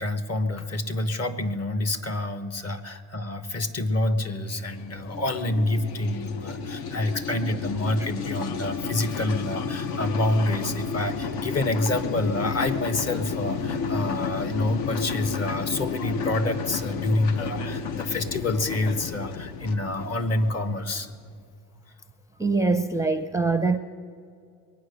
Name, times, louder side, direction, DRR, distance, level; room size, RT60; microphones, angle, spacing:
voice 1, 0.0-21.1, left 2 dB, 40° left, 1.2 m, -27 dB
sound 1, 4.5-21.1, left 6 dB, 70° left, 0.9 m, -32 dB
voice 2, 22.4-23.8, right 3 dB, 10° right, 0.5 m, -23 dB
21.5 x 9.4 x 6.7 m
cardioid pair, 90°, 39 cm